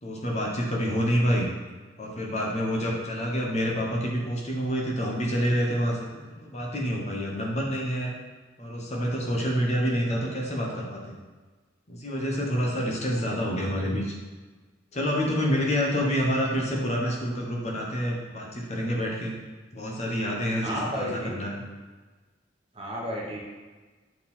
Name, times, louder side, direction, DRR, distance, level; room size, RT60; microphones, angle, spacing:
voice 1, 0.0-1.5 2.0-8.1 8.6-11.0 11.9-14.1 14.9-19.3 19.7-21.6, equal, 40° left, -1 dB, 1.0 m, -27 dB
voice 2, 20.6-21.3 22.7-23.4, equal, 30° right, -3 dB, 1.2 m, -32 dB
6.5 x 3.6 x 4.3 m, 1.3 s
head